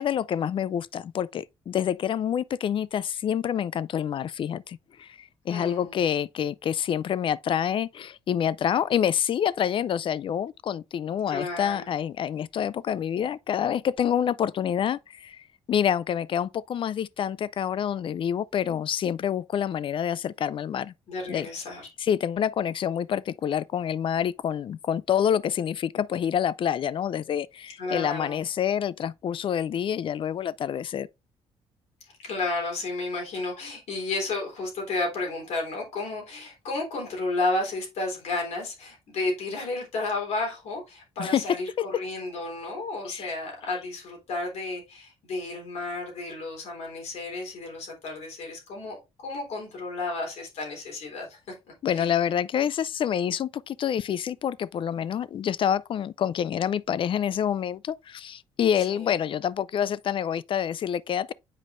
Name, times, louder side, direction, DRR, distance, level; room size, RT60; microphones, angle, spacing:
voice 1, 0.0-20.9 21.3-21.5 22.0-31.1 41.2-41.6 43.1-43.3 51.8-61.3, left 9 dB, 50° left, 0.4 m, -27 dB
voice 2, 5.5-6.0 11.3-11.9 21.1-21.9 27.8-28.4 32.2-51.4 51.9-52.1 58.9-59.1, left 2 dB, 75° left, 3.5 m, -32 dB
7.6 x 5.0 x 2.5 m
cardioid pair, 90°, 11 cm